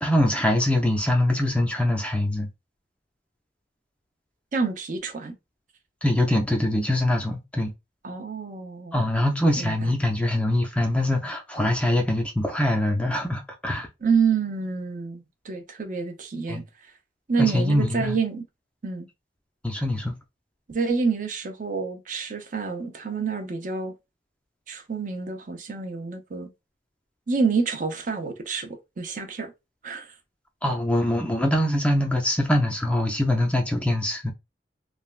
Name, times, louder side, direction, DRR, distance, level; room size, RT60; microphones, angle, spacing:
voice 1, 0.0-2.5 6.0-7.7 8.9-13.9 16.5-16.6 17.4-18.2 19.6-20.2 30.6-34.3, left 1 dB, 5° left, 0.4 m, -23 dB
voice 2, 4.5-5.4 6.3-6.4 8.0-9.0 9.6-9.9 14.0-16.6 17.3-18.5 18.8-19.1 20.7-23.9 24.7-26.5 27.3-29.5 29.8-30.1, right 5 dB, 45° right, 0.5 m, -28 dB
3.2 x 2.2 x 2.3 m
head